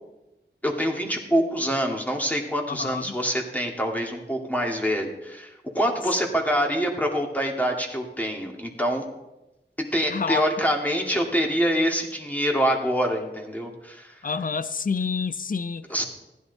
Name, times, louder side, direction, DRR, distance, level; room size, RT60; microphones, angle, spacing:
voice 1, 0.6-9.1 9.8-14.1 15.9-16.0, equal, 10° left, 2.4 m, -25 dB
voice 2, 2.7-3.2 10.1-10.4 14.2-15.9, left 5 dB, 45° left, 0.5 m, -28 dB
15.5 x 10.5 x 4.1 m
wide cardioid pair, 50°, 20 cm